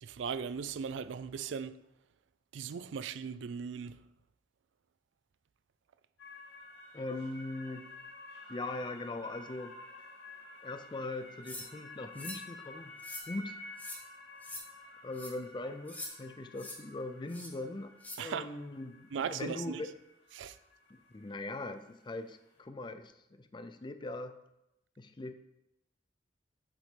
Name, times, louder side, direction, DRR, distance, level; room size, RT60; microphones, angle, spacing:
voice 1, 0.0-1.8 2.5-4.0 18.2-18.6 19.1-19.8 20.3-20.6, right 6 dB, 85° right, 0.4 m, -38 dB
sound 1, 6.2-22.6, left 2 dB, 75° left, 2.3 m, -52 dB
voice 2, 6.9-7.9 8.5-9.8 10.6-12.9 13.3-13.6 15.0-19.9 20.9-24.4 25.0-25.3, left 2 dB, 25° left, 0.5 m, -41 dB
sound 2, 11.5-11.7 12.2-12.4 13.0-13.3 13.8-14.0 14.4-14.6 15.1-15.3 15.9-16.1 16.6-16.8 17.3-17.5 18.0-18.2, left 1 dB, 10° left, 1.1 m, -43 dB
7.5 x 4.1 x 5.0 m
head